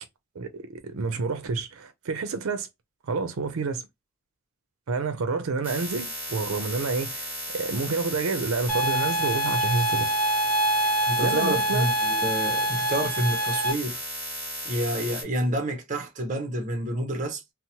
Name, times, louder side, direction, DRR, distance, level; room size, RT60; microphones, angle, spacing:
voice 1, 0.4-2.7 3.1-3.8 4.9-10.1 11.2-11.9, right 4 dB, 90° right, 0.5 m, -29 dB
sound 1, 5.6-15.2, equal, 10° right, 1.2 m, -35 dB
sound 2, 8.7-13.7, right 1 dB, 10° left, 0.6 m, -25 dB
voice 2, 10.8-14.0 14.6-17.4, right 1 dB, 35° right, 0.6 m, -29 dB
2.7 x 2.0 x 2.8 m
head